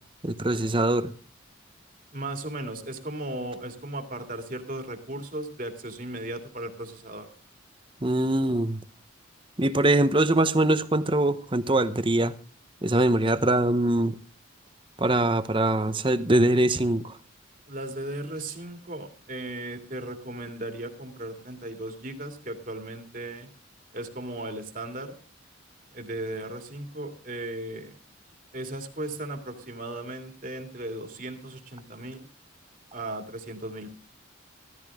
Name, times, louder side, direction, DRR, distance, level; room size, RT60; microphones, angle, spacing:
voice 1, 0.2-1.1 8.0-8.8 9.6-12.3 12.8-14.1 15.0-17.1, right 1 dB, 25° right, 0.9 m, -23 dB
voice 2, 2.1-7.3 17.7-23.5 23.9-25.1 25.9-27.9 28.5-32.3 32.9-33.9, right 1 dB, 40° right, 2.6 m, -36 dB
15.5 x 14.0 x 3.6 m
head